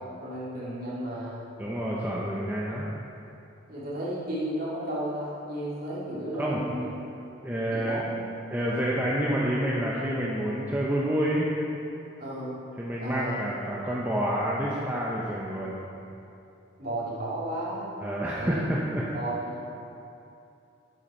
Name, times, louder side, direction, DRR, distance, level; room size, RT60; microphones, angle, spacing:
voice 1, 0.2-1.4 3.7-7.0 7.7-8.1 12.2-12.6 13.0-13.4 16.8-18.0 18.4-18.7 19.1-19.6, right 1 dB, 45° right, -8 dB, 3.0 m, -33 dB
voice 2, 1.6-2.9 6.4-6.6 7.4-8.0 8.5-11.5 12.8-15.8 18.0-19.0, equal, 10° right, -6 dB, 0.9 m, -28 dB
11.5 x 9.3 x 4.5 m, 2.7 s
head